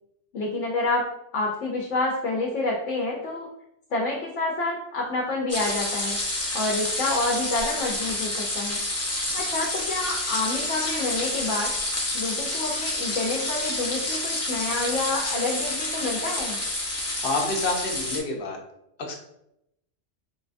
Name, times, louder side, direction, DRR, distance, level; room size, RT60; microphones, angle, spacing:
voice 1, 0.3-1.1 1.3-3.5 3.9-6.2 6.5-8.8 9.3-11.7 12.1-16.6, left 2 dB, 80° left, -2 dB, 1.0 m, -28 dB
sound 1, 5.5-18.2, left 1 dB, 25° left, 0.3 m, -29 dB
voice 2, 17.0-18.6 19.0-19.2, left 2 dB, 55° left, 1 dB, 0.8 m, -28 dB
4.6 x 2.2 x 2.5 m, 0.80 s
omnidirectional pair, 1.2 m